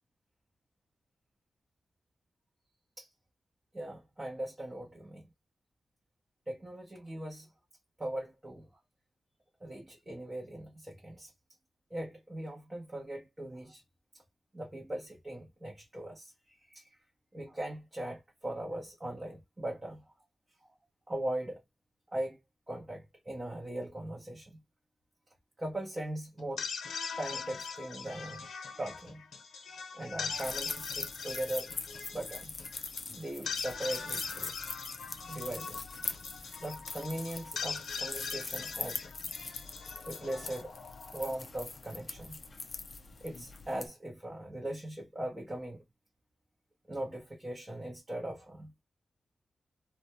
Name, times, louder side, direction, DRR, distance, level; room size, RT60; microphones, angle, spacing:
voice 1, 3.7-5.2 6.5-7.5 8.0-8.7 9.6-11.3 11.9-13.8 14.5-16.3 16.7-16.9 17.3-20.0 21.1-21.6 22.1-22.4 22.7-24.5 25.6-26.7 27.2-28.5 28.8-29.2 30.0-31.7 32.1-32.5 33.1-34.5 35.3-35.8 36.6-39.1 40.1-40.7 41.1-42.4 43.2-45.8 46.9-48.7, right 1 dB, 20° right, 0.7 m, -39 dB
sound 1, 26.4-41.6, left 5 dB, 90° left, 0.7 m, -41 dB
sound 2, 30.3-43.9, left 4 dB, 40° left, 0.4 m, -42 dB
2.1 x 2.1 x 2.8 m
wide cardioid pair, 125°, 0 cm